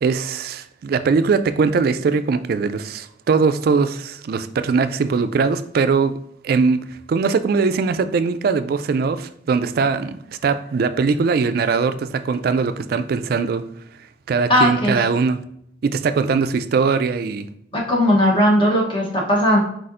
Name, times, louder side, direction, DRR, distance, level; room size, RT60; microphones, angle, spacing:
voice 1, 0.0-6.2 6.4-6.8 7.1-13.6 14.3-15.4 15.8-17.5, right 5 dB, 55° right, 12 dB, 0.3 m, -20 dB
voice 2, 14.5-15.0 17.7-19.6, equal, 25° left, -2 dB, 0.9 m, -17 dB
4.8 x 4.2 x 2.5 m, 0.72 s
head